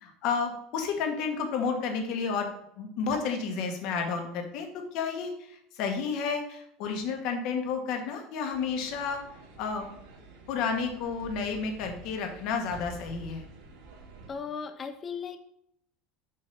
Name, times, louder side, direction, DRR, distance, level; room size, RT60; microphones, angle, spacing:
voice 1, 0.0-9.2 9.6-9.9 10.5-13.5, left 5 dB, 55° left, 4 dB, 1.1 m, -31 dB
sound 1, 8.5-14.3, right 3 dB, 85° right, 2.0 m, -48 dB
voice 2, 14.3-15.4, left 6 dB, 20° left, 8 dB, 0.4 m, -36 dB
6.5 x 2.7 x 5.5 m, 0.72 s
supercardioid pair, 150°, 0 cm